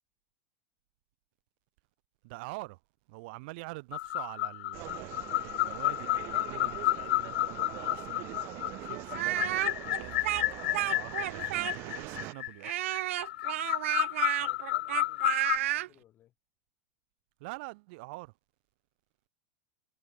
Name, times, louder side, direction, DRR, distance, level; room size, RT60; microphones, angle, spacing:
voice 1, 2.2-2.8 3.1-10.2 10.6-12.8 17.4-18.3, right 26 dB, 50° right, 4.7 m, -45 dB
sound 1, 3.9-15.6, left 17 dB, 65° left, 0.6 m, -32 dB
sound 2, 4.7-12.3, right 21 dB, 35° right, 0.9 m, -43 dB
Speech, 9.1-12.0 12.6-15.9, right 15 dB, 75° right, 0.6 m, -31 dB
voice 2, 14.4-16.3, left 12 dB, 25° left, 7.1 m, -61 dB
supercardioid pair, 170°, 7 cm